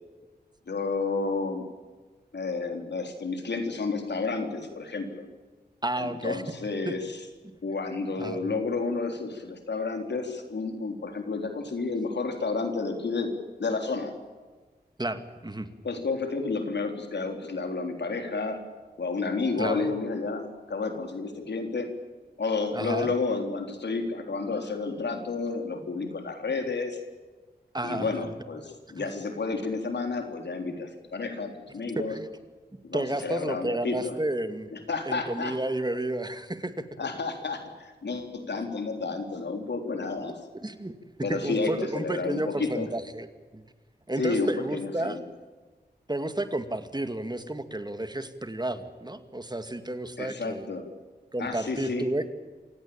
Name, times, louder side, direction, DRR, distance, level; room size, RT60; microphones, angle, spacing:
voice 1, 0.7-1.7 2.3-5.2 6.0-7.0 7.6-13.3 13.6-14.1 15.8-18.6 19.0-21.9 22.4-27.0 27.8-32.2 32.8-34.1 34.7-35.6 37.0-40.4 41.2-42.9 44.2-45.2 50.2-50.9 51.4-52.1, left 3 dB, 90° left, 5 dB, 3.8 m, -31 dB
voice 2, 5.8-6.4 6.9-7.0 8.2-8.4 15.0-15.7 19.6-19.9 22.7-23.1 27.7-28.1 29.0-29.1 32.1-32.3 32.9-34.7 35.0-36.9 40.5-40.9 41.3-43.3 43.5-43.6 44.1-45.2 46.1-50.7 51.3-52.3, right 1 dB, 25° right, 9 dB, 2.3 m, -31 dB
27.5 x 17.0 x 8.8 m, 1.4 s
wide cardioid pair, 60°, 17 cm